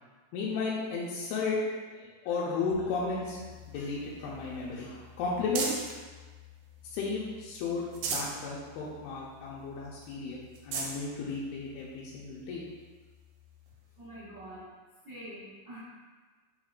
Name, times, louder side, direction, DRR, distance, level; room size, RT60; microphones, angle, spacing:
voice 1, 0.3-1.6 1.9-3.4 3.7-5.8 6.8-12.6, left 4 dB, 85° left, -5 dB, 2.6 m, -34 dB
sound 1, 2.7-14.6, left 12 dB, 60° left, 2.5 m, -55 dB
sound 2, 3.4-6.0 6.5-7.3 7.7-8.4 8.9-9.0 9.3-9.4 10.0-10.1 10.5-11.0 11.8-11.9 13.7-13.8, right 4 dB, 85° right, 2.6 m, -38 dB
voice 2, 14.0-14.6 15.0-15.8, right 1 dB, 60° right, -14 dB, 1.2 m, -45 dB
5.9 x 3.6 x 2.4 m, 1.4 s
omnidirectional pair, 4.4 m